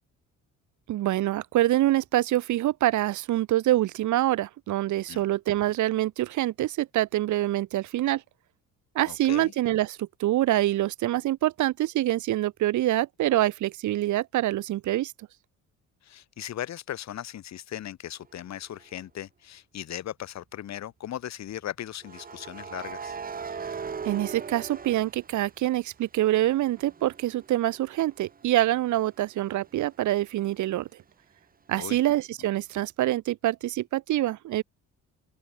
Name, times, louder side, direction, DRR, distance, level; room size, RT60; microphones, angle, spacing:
voice 1, 0.9-8.2 8.9-15.1 24.0-30.9 31.7-34.6, right 15 dB, 65° right, 1.3 m, -25 dB
voice 2, 9.1-9.5 16.0-23.2 31.7-32.0, left 11 dB, 55° left, 7.2 m, -38 dB
sound 1, 18.7-19.0 22.0-25.9 26.3-29.9, right 5 dB, 25° right, 5.1 m, -40 dB
open air
cardioid pair, 155°, 32 cm